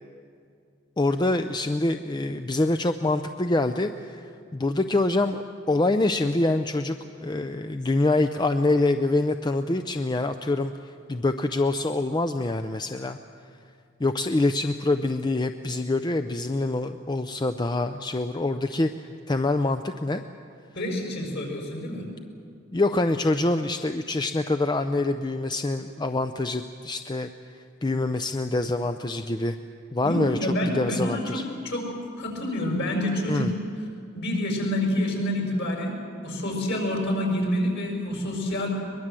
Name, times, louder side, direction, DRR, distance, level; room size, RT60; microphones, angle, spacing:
voice 1, 1.0-4.2 4.5-13.2 14.0-18.9 19.3-20.2 22.7-29.6 29.9-31.4 33.3-33.5, left 2 dB, 20° left, 8 dB, 0.5 m, -25 dB
voice 2, 20.8-22.0 30.0-31.9 32.2-33.5 34.1-36.0 36.2-38.7, left 1 dB, 55° left, 1 dB, 5.4 m, -27 dB
22.5 x 21.5 x 7.6 m, 2.3 s
head